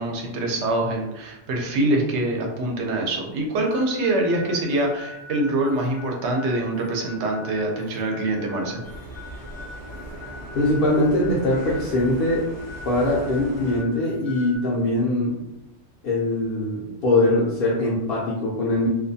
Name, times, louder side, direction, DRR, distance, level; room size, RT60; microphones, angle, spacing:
voice 1, 0.0-8.8, right 2 dB, 75° right, 1 dB, 0.9 m, -24 dB
sound 1, 3.7-14.6, left 3 dB, 85° left, 0.9 m, -43 dB
sound 2, 8.8-13.8, right 1 dB, 50° right, 1.0 m, -38 dB
voice 2, 10.5-12.5 12.8-15.4 16.0-18.9, left 1 dB, 60° left, -6 dB, 0.7 m, -22 dB
2.4 x 2.2 x 2.7 m, 0.93 s
omnidirectional pair, 1.2 m